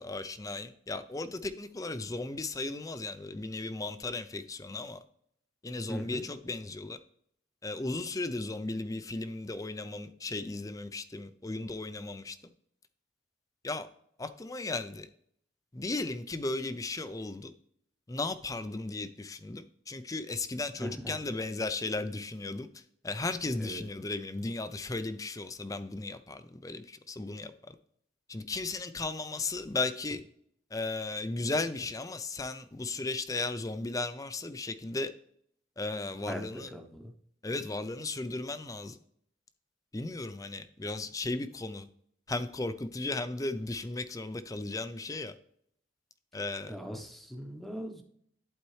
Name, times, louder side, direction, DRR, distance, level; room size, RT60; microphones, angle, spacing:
voice 1, 0.0-5.0 5.6-7.0 7.6-12.4 13.6-13.9 14.2-15.1 15.7-17.5 18.1-27.8 28.3-30.2 30.7-35.1 35.8-36.7 37.4-39.0 39.9-41.9 42.3-45.4 46.3-46.8, left 2 dB, 20° left, 11 dB, 0.5 m, -36 dB
voice 2, 5.9-6.3 20.8-21.2 23.6-23.8 36.3-37.1 46.7-48.0, equal, ahead, 4 dB, 0.9 m, -40 dB
11.5 x 4.4 x 3.2 m, 0.67 s
head